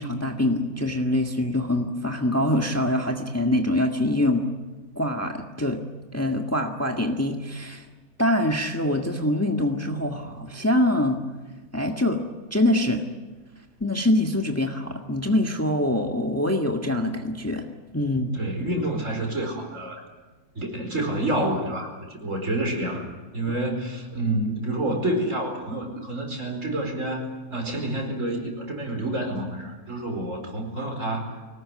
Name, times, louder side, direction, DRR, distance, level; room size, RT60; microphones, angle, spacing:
voice 1, 0.0-4.5 4.9-5.8 6.1-7.8 8.2-11.2 11.7-12.2 12.5-13.0 13.8-17.7 17.9-18.4, left 1 dB, 10° left, 3 dB, 1.6 m, -24 dB
voice 2, 18.3-20.1 20.6-31.4, right 1 dB, 60° right, 3 dB, 5.2 m, -28 dB
24.0 x 19.5 x 9.6 m, 1.2 s
omnidirectional pair, 1.5 m